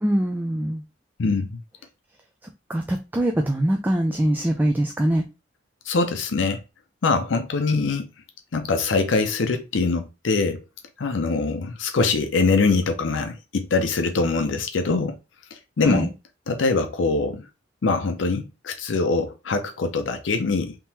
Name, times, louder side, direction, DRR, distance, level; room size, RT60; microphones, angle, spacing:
voice 1, 0.0-0.8 2.7-5.3 15.8-16.1, right 1 dB, 10° right, 0.3 m, -23 dB
voice 2, 1.2-1.6 5.9-6.6 7.0-8.1 8.5-10.6 11.0-15.2 15.8-16.1 16.5-17.5 17.8-20.7, left 3 dB, 85° left, 0.5 m, -23 dB
3.6 x 2.9 x 2.7 m
head